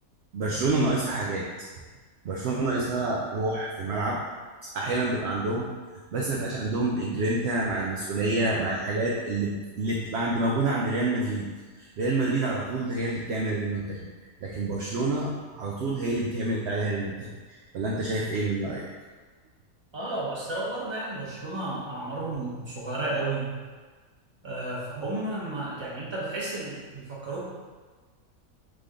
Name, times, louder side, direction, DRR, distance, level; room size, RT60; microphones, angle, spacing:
voice 1, 0.3-1.7 2.2-4.2 4.7-5.7 6.1-11.5 11.8-14.1 14.4-18.8, right 2 dB, 65° right, -3 dB, 0.7 m, -28 dB
voice 2, 19.9-23.5 24.4-27.4, right 2 dB, 20° right, -6 dB, 0.9 m, -32 dB
3.7 x 3.5 x 3.7 m, 1.4 s
omnidirectional pair, 1.5 m